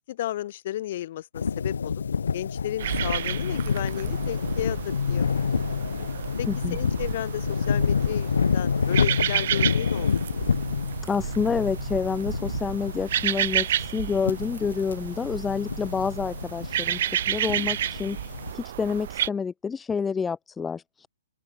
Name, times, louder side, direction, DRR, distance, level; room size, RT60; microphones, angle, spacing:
voice 1, 0.0-2.0 2.3-5.3 6.4-10.4, left 13 dB, 50° left, 5.1 m, -34 dB
sound 1, 1.3-18.5, left 6 dB, 85° left, 3.5 m, -28 dB
sound 2, 2.8-19.3, right 11 dB, 55° right, 2.0 m, -31 dB
voice 2, 6.5-6.8 11.0-17.0 17.3-18.2 18.5-21.1, left 5 dB, 10° left, 0.7 m, -28 dB
open air
hypercardioid pair, 150°, 0 cm